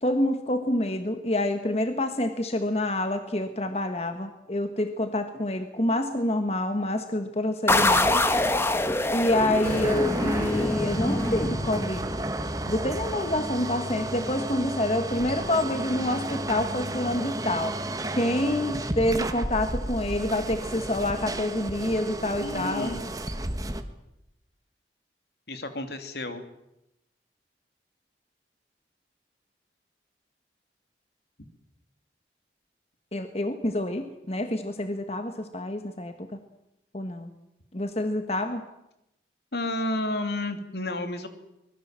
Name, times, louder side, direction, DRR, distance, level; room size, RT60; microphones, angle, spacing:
voice 1, 0.0-8.2 9.1-12.2 12.7-17.9 18.1-22.9 33.1-36.1 36.9-37.3 37.7-38.6, left 1 dB, 35° left, 7 dB, 1.5 m, -27 dB
sound 1, 7.7-12.2, left 2 dB, 15° left, 1.4 m, -25 dB
sound 2, 9.6-23.8, right 1 dB, 20° right, 1.5 m, -32 dB
voice 2, 22.4-23.0 25.5-26.4 39.5-41.3, left 1 dB, 65° left, 8 dB, 2.8 m, -31 dB
24.5 x 21.0 x 7.5 m, 0.88 s
head